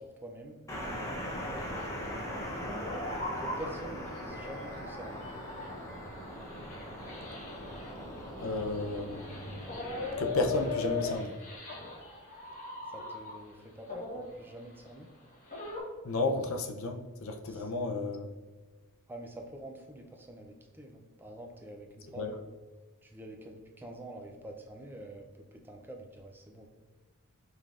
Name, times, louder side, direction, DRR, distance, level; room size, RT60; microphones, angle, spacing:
voice 1, 0.0-1.6 2.5-2.9 3.4-5.3 11.4-11.5 12.9-15.1 17.4-17.7 19.1-22.6 23.0-26.7, right 1 dB, 10° right, 2 dB, 0.3 m, -47 dB
sound 1, 0.7-11.2, equal, 15° left, 0.7 m, -41 dB
sound 2, 1.6-13.5 13.9-15.8, left 3 dB, 35° left, 1.2 m, -41 dB
voice 2, 8.4-9.6 10.2-11.3 16.0-18.3 22.2-22.3, left 2 dB, 65° left, 5 dB, 0.5 m, -32 dB
5.4 x 3.4 x 2.4 m, 1.3 s
head